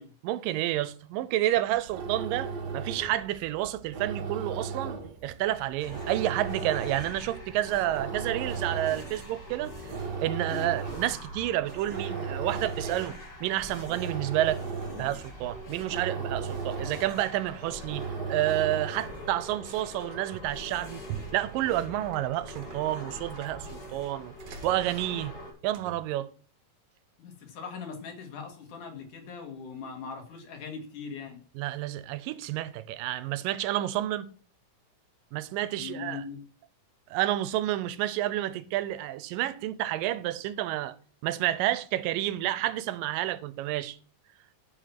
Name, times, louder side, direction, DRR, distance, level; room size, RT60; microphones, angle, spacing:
voice 1, 0.2-14.6 15.0-21.0 21.3-24.3 24.6-25.3 25.6-26.3 31.6-34.3 35.3-36.2 37.1-41.0 41.2-44.0, right 14 dB, 90° right, 2.4 m, -30 dB
sound 1, 1.7-19.3, right 5 dB, 45° right, 1.4 m, -37 dB
sound 2, 5.8-25.5, equal, 30° left, 5.6 m, -44 dB
sound 3, 20.1-20.6 21.0-26.2, right 10 dB, 65° right, 1.7 m, -45 dB
voice 2, 27.2-31.4 35.8-36.4, left 5 dB, 70° left, 3.2 m, -40 dB
11.0 x 5.8 x 5.9 m
omnidirectional pair, 3.8 m